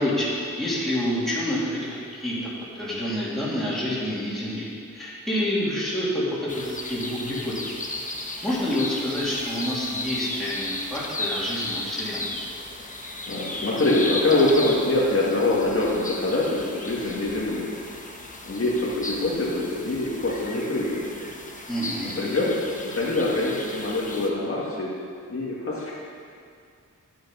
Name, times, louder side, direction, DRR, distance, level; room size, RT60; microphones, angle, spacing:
voice 1, 0.0-2.4 2.7-7.8 8.4-12.3 21.7-22.2, left 1 dB, ahead, -9 dB, 3.1 m, -28 dB
sound 1, 6.5-24.3, left 2 dB, 25° left, 1.1 m, -35 dB
voice 2, 13.2-17.7 18.4-21.2 22.2-24.9 25.3-25.9, left 2 dB, 45° left, -7 dB, 1.9 m, -24 dB
11.5 x 8.4 x 5.5 m, 2.3 s
wide cardioid pair, 145°, 31 cm